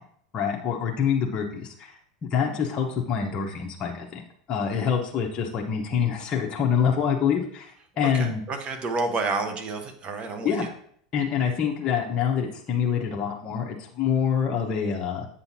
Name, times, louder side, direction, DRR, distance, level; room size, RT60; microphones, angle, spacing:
voice 1, 0.3-8.4 10.4-10.7 11.1-15.3, left 7 dB, 35° left, -1 dB, 0.9 m, -26 dB
voice 2, 8.0-10.7, right 3 dB, 35° right, 6 dB, 1.1 m, -30 dB
8.0 x 5.5 x 2.7 m, 0.63 s
hypercardioid pair, 105°, 4 cm